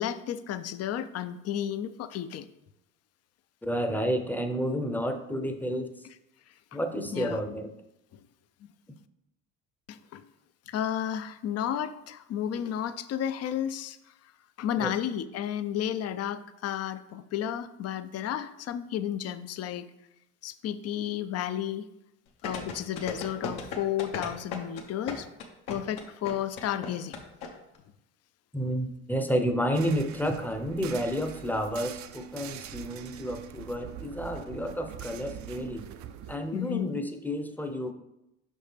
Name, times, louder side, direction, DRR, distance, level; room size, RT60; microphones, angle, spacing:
voice 1, 0.0-2.5 7.1-7.4 8.6-8.7 9.9-10.2 10.7-14.0 14.6-19.9 20.4-21.9 22.4-25.3 25.7-27.2 36.5-36.9, left 10 dB, 40° left, 13 dB, 0.5 m, -32 dB
voice 2, 3.6-5.9 6.7-7.7 14.8-14.9 28.5-35.9 36.3-37.9, equal, 5° left, 5 dB, 0.7 m, -30 dB
sound 1, 22.4-27.5 27.7-27.8, left 5 dB, 70° left, 1.1 m, -35 dB
sound 2, 29.7-36.4, right 11 dB, 50° right, 0.5 m, -44 dB
5.5 x 5.3 x 3.3 m, 0.86 s
hypercardioid pair, 65°, 39 cm